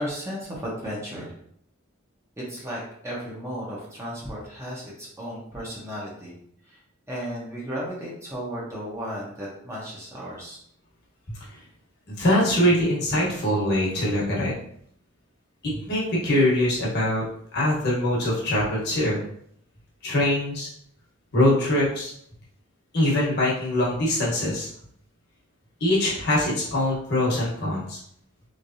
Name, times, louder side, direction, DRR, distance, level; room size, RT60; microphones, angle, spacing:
voice 1, 0.0-1.4 2.4-6.4 6.7-6.8 7.1-10.6, equal, 15° right, -5 dB, 0.9 m, -34 dB
voice 2, 12.1-14.5 15.6-17.2 17.5-19.2 20.0-20.7 21.3-22.1 22.9-24.7 25.8-28.0, left 1 dB, 55° left, -5 dB, 1.2 m, -23 dB
3.2 x 3.2 x 2.7 m, 0.68 s
head